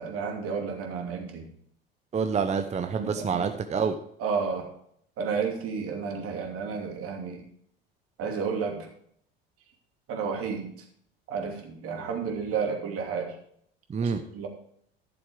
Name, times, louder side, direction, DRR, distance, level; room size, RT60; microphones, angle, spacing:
voice 1, 0.0-1.4 3.0-3.6 4.2-4.7 5.2-7.5 8.2-8.9 10.1-10.8 11.3-13.4 14.0-14.5, right 5 dB, 50° right, 1 dB, 2.8 m, -32 dB
voice 2, 2.1-4.0 13.9-14.2, right 6 dB, 20° right, 7 dB, 0.8 m, -27 dB
12.0 x 7.1 x 4.9 m, 0.66 s
figure-of-eight pair, 70°, 30 cm